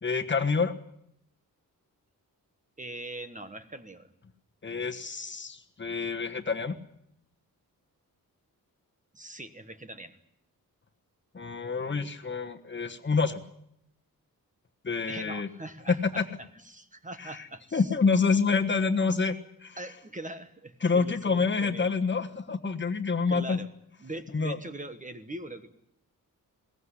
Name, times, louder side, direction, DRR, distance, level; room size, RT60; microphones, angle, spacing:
voice 1, 0.0-0.7 4.6-6.8 11.3-13.4 14.8-15.5 15.9-16.2 17.2-17.5 17.7-19.3 19.6-19.8 20.8-23.6 24.3-24.6, left 4 dB, 30° left, 6 dB, 1.4 m, -27 dB
voice 2, 2.8-4.1 9.1-10.2 15.1-16.2 16.6-17.9 19.8-21.9 23.3-23.7 24.0-25.7, right 2 dB, 20° right, 9 dB, 1.3 m, -41 dB
21.5 x 18.0 x 9.9 m, 0.76 s
wide cardioid pair, 155°, 36 cm